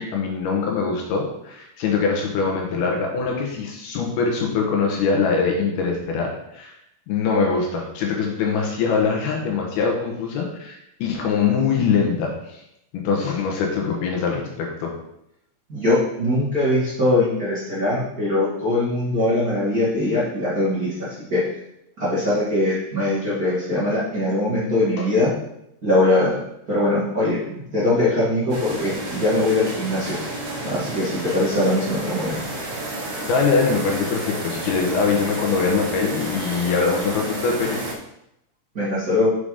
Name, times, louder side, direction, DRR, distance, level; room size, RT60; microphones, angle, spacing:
voice 1, 0.0-6.8 7.1-12.6 12.9-14.9 25.0-25.1 33.2-37.8, left 5 dB, 75° left, 0 dB, 3.0 m, -23 dB
voice 2, 15.7-21.4 22.0-25.3 25.8-26.4 26.7-27.4 27.7-30.2 30.6-32.4 38.7-39.3, left 2 dB, 30° right, -10 dB, 2.1 m, -21 dB
sound 1, 28.5-37.9, right 1 dB, 60° right, 2.4 m, -31 dB
6.9 x 5.8 x 5.0 m, 0.81 s
omnidirectional pair, 4.8 m